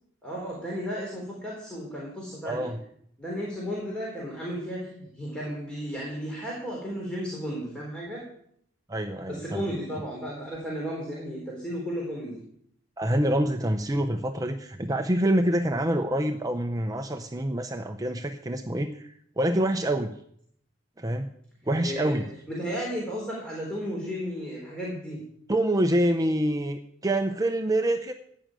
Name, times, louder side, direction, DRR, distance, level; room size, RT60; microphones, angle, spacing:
voice 1, 0.2-2.7 3.2-8.3 9.3-12.4 21.8-25.2, equal, 5° left, -4 dB, 4.1 m, -34 dB
voice 2, 2.5-2.8 8.9-9.6 13.0-20.2 21.0-21.3 21.7-22.3 25.5-28.1, right 1 dB, 20° right, 6 dB, 0.7 m, -26 dB
15.5 x 6.2 x 9.1 m, 0.69 s
head